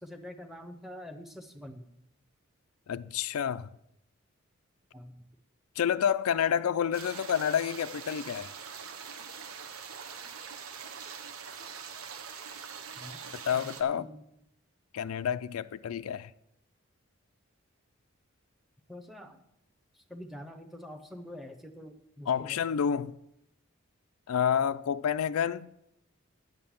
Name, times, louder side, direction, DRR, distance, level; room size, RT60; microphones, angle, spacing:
voice 1, 0.0-1.9 4.9-5.1 13.0-13.2 13.5-14.2 18.9-19.4 19.9-22.6, left 1 dB, ahead, 0.8 m, -46 dB
voice 2, 2.9-3.7 5.8-8.5 13.3-14.1 14.9-16.3 22.3-23.2 24.3-25.7, left 8 dB, 85° left, 0.4 m, -29 dB
sound 1, 6.9-13.8, right 6 dB, 85° right, 1.0 m, -43 dB
9.4 x 7.6 x 7.0 m
head